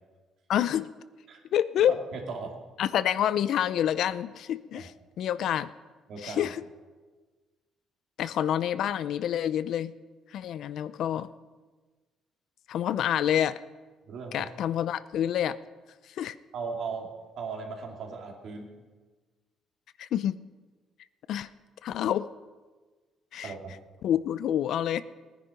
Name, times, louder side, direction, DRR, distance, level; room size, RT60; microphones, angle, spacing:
voice 1, 0.5-0.9 1.5-2.0 2.8-5.7 6.2-6.6 8.2-9.9 10.3-11.3 12.7-13.6 14.3-15.6 16.0-16.4 20.0-20.4 21.3-21.5 21.8-22.3 23.3-23.5 24.0-25.0, left 10 dB, 65° left, 15 dB, 0.5 m, -27 dB
voice 2, 2.1-2.5 4.7-4.9 6.1-6.5 14.1-14.5 16.5-17.1 17.4-18.7 23.4-23.8, right 5 dB, 60° right, 1 dB, 2.6 m, -37 dB
18.5 x 10.0 x 5.2 m, 1.3 s
cardioid pair, 120°, 0 cm